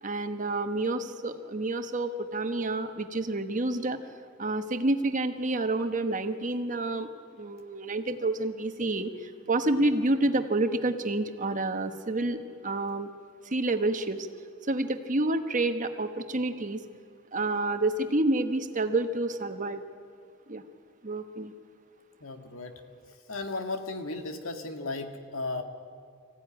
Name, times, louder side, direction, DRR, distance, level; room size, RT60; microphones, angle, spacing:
voice 1, 0.0-4.0 4.4-7.1 7.3-12.4 12.6-13.1 13.4-14.3 14.6-16.8 17.3-19.8 20.5-20.6 21.0-21.5, right 2 dB, 40° right, 8 dB, 1.2 m, -29 dB
voice 2, 22.2-22.7 23.3-25.6, left 3 dB, 80° left, 5 dB, 2.0 m, -35 dB
25.0 x 15.0 x 9.9 m, 2.3 s
head